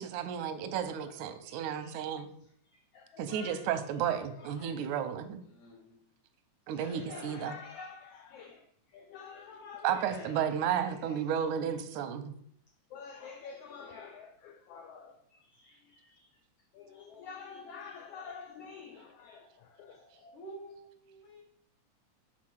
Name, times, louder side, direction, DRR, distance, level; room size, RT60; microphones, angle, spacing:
voice 1, 0.0-2.3 3.2-5.4 6.7-7.6 9.8-12.3, right 9 dB, 90° right, 10 dB, 2.1 m, -33 dB
voice 2, 1.4-2.1 2.9-3.7 4.4-4.8 6.7-8.6 8.9-10.5 11.1-11.2 12.9-15.2 15.6-16.1 16.7-20.3, left 6 dB, 90° left, 5 dB, 1.3 m, -48 dB
voice 3, 5.5-6.0 20.3-21.4, right 2 dB, 75° left, -1 dB, 3.3 m, -49 dB
7.3 x 4.2 x 6.2 m, 0.66 s
omnidirectional pair, 3.5 m